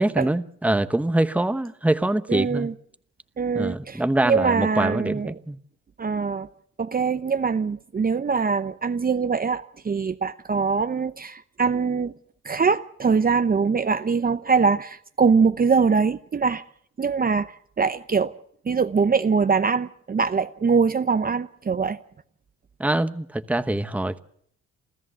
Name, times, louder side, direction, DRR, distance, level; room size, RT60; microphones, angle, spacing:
voice 1, 0.0-2.7 3.5-5.6 22.8-24.2, right 1 dB, 5° right, 1.0 m, -24 dB
voice 2, 2.3-2.7 3.4-5.4 6.0-6.5 6.8-12.1 12.4-16.6 17.0-18.3 18.7-22.0, right 5 dB, 30° right, 0.8 m, -23 dB
28.0 x 14.0 x 7.7 m
cardioid pair, 90°, 30 cm